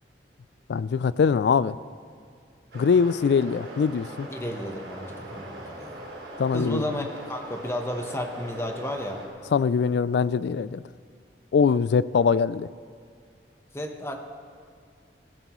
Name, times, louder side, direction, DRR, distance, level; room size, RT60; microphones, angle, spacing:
voice 1, 0.7-1.8 2.7-4.3 6.4-6.8 9.5-10.8 11.5-12.7, left 6 dB, 70° left, 18 dB, 0.3 m, -22 dB
sound 1, 2.7-9.3, right 1 dB, 75° right, 3.6 m, -41 dB
voice 2, 4.3-6.1 6.5-9.2 13.7-14.1, left 1 dB, 15° left, 3 dB, 1.0 m, -32 dB
18.0 x 15.0 x 3.1 m, 2.2 s
head